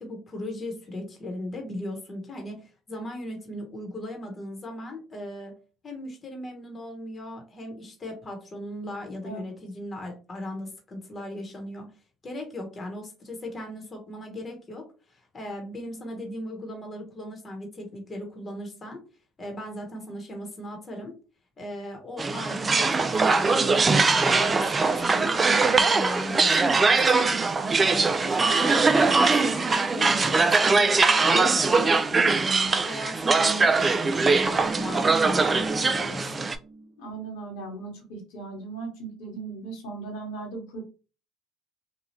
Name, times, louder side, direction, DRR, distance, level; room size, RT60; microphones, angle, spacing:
voice 1, 0.0-5.5 5.8-11.9 12.2-19.0 19.4-21.1 21.6-27.3 27.8-32.5 32.8-36.5, left 1 dB, 35° left, 3 dB, 1.1 m, -37 dB
sound 1, 22.2-36.6, right 4 dB, 30° right, 0.4 m, -22 dB
sound 2, 34.2-36.9 37.2-37.3, right 3 dB, 70° right, 0.9 m, -37 dB
voice 2, 37.0-40.8, right 4 dB, 80° left, 0 dB, 1.2 m, -38 dB
2.8 x 2.3 x 3.1 m, 0.35 s
supercardioid pair, 70°, 0 cm